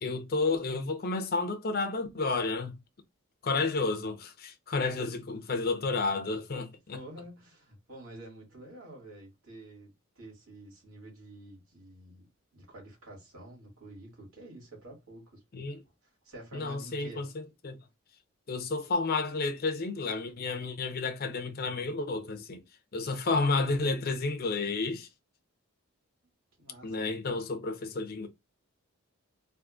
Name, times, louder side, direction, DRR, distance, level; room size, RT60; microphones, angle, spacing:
voice 1, 0.0-2.7 3.4-7.0 15.5-15.8 16.5-17.8 18.5-22.6 22.9-25.1 26.8-28.3, left 3 dB, 45° left, 0.5 m, -31 dB
voice 2, 6.9-12.3 12.5-15.4 16.2-17.3 26.6-27.0, right 1 dB, 85° right, 2.1 m, -48 dB
3.6 x 2.5 x 2.4 m
head